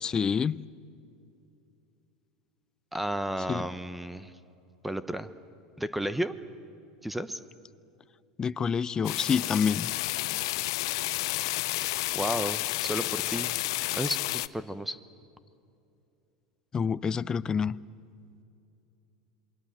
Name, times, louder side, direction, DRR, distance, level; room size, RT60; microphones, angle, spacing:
voice 1, 0.0-0.6 3.5-3.7 8.4-9.9 16.7-17.8, left 6 dB, 25° left, 19 dB, 0.6 m, -27 dB
voice 2, 2.9-4.3 4.8-5.3 5.8-6.3 7.0-7.4 12.1-13.5 13.9-15.0, right 1 dB, 5° right, 13 dB, 1.0 m, -32 dB
sound 1, 9.0-14.5, left 19 dB, 70° left, 0.5 m, -31 dB
27.5 x 21.5 x 7.8 m, 2.6 s
hypercardioid pair, 95°, 3 cm